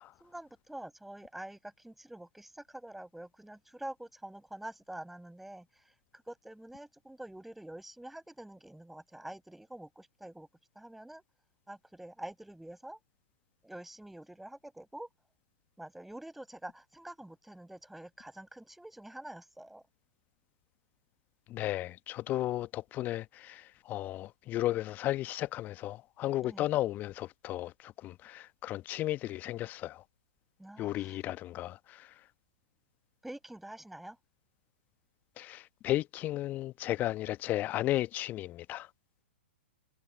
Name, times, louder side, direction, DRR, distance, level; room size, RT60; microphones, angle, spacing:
voice 1, 0.2-5.9 6.3-10.5 10.8-11.2 11.7-13.0 13.6-15.1 15.8-19.8 26.4-26.7 30.6-31.2 33.2-34.2, right 1 dB, 5° right, 5.4 m, -46 dB
voice 2, 21.5-30.0 30.8-32.1 35.4-38.9, left 15 dB, 25° left, 1.1 m, -34 dB
figure-of-eight pair, 110°, 6 cm